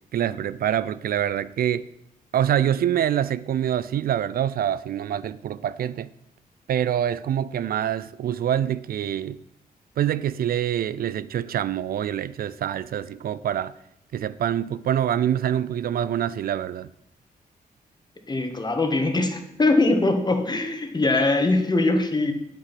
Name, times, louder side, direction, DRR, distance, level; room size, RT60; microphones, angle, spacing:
voice 1, 0.1-1.8 2.3-6.1 6.7-9.4 10.0-13.7 14.1-16.9, right 10 dB, 65° right, 0.4 m, -25 dB
voice 2, 18.3-22.3, left 2 dB, 25° left, 1.7 m, -22 dB
9.2 x 8.4 x 5.9 m
cardioid pair, 80°, 16 cm